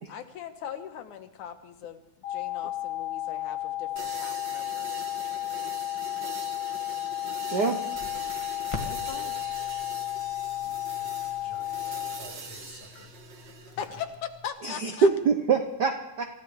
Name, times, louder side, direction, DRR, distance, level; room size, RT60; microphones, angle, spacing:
voice 1, 0.1-2.0 2.3-4.9 8.8-9.3 13.7-14.1 14.4-15.1, left 9 dB, 85° left, 7 dB, 2.6 m, -40 dB
sound 1, 2.2-12.2, left 14 dB, 65° left, 1.9 m, -33 dB
sound 2, 4.0-13.8, right 4 dB, 45° right, 1.7 m, -43 dB
Crackle, 7.9-14.5, left 3 dB, 15° left, 0.9 m, -45 dB
voice 2, 10.6-11.8 12.2-13.1 13.8-14.0, left 3 dB, 50° left, 3 dB, 2.4 m, -50 dB
voice 3, 14.6-16.2, right 4 dB, 85° right, 4 dB, 0.9 m, -24 dB
28.0 x 15.0 x 3.3 m, 0.88 s
omnidirectional pair, 3.5 m